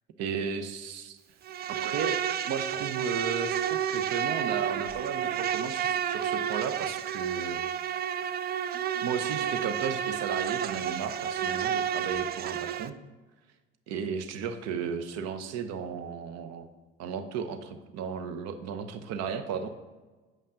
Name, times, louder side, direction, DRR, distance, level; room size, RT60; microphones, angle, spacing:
voice 1, 0.2-1.2 1.7-2.2 2.4-7.6 9.0-13.0 13.9-16.7 17.0-19.7, right 6 dB, 60° right, 8 dB, 0.8 m, -34 dB
Insect, 1.4-12.9, right 9 dB, 35° right, 0.4 m, -31 dB
7.5 x 5.4 x 3.7 m, 1.3 s
hypercardioid pair, 55°, 30 cm